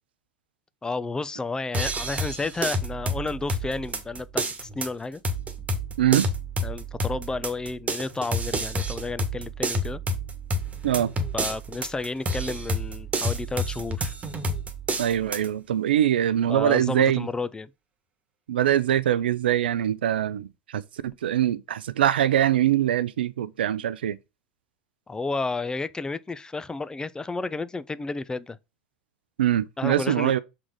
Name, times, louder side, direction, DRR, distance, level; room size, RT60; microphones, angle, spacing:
voice 1, 0.8-5.2 6.6-10.0 11.3-14.1 16.5-17.7 25.1-28.6 29.8-30.3, left 3 dB, 15° left, 0.5 m, -31 dB
sound 1, 1.7-15.5, right 1 dB, 25° right, 1.4 m, -29 dB
voice 2, 6.0-6.3 10.8-11.1 15.0-17.3 18.5-24.2 29.4-30.4, right 11 dB, 80° right, 0.5 m, -23 dB
6.1 x 3.8 x 4.8 m
hypercardioid pair, 90°, 5 cm